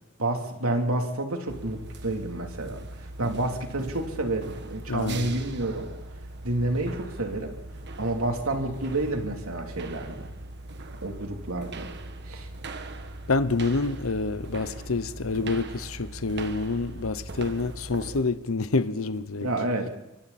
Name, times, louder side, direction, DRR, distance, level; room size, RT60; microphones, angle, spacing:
voice 1, 0.2-2.8 3.2-5.9 6.4-7.5 8.0-10.3 11.0-11.9 12.3-12.5 19.4-19.9, right 2 dB, 85° right, 3.3 m, -29 dB
sound 1, 1.5-18.2, right 2 dB, 55° right, 1.5 m, -40 dB
voice 2, 4.9-5.4 13.3-19.5, left 3 dB, 75° left, 0.9 m, -27 dB
26.0 x 24.0 x 4.3 m
head